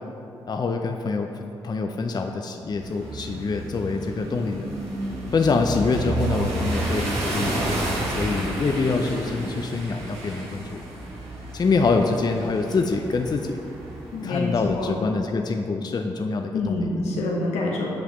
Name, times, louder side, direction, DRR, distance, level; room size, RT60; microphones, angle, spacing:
voice 1, 0.5-1.3 1.6-4.7 5.3-7.6 8.1-10.8 11.5-13.6 14.2-16.9, left 4 dB, 40° left, 4 dB, 0.4 m, -25 dB
sound 1, 2.7-14.8, right 1 dB, 80° right, 1.2 m, -31 dB
voice 2, 14.1-14.9 16.5-17.9, left 2 dB, 85° left, -2 dB, 0.9 m, -26 dB
8.3 x 4.9 x 3.1 m, 2.6 s
supercardioid pair, 45°, 11 cm